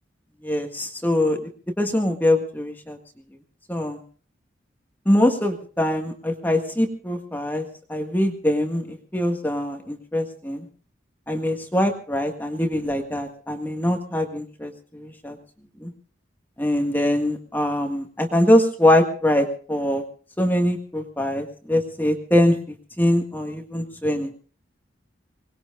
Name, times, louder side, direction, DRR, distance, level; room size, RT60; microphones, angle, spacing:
voice 1, 0.4-1.4 1.8-3.0 3.7-4.0 5.0-10.6 11.3-15.4 15.8-15.9 16.6-20.0 20.4-22.6 23.0-24.3, left 1 dB, 10° left, 4 dB, 1.7 m, -23 dB
24.5 x 20.0 x 2.5 m, 0.41 s
head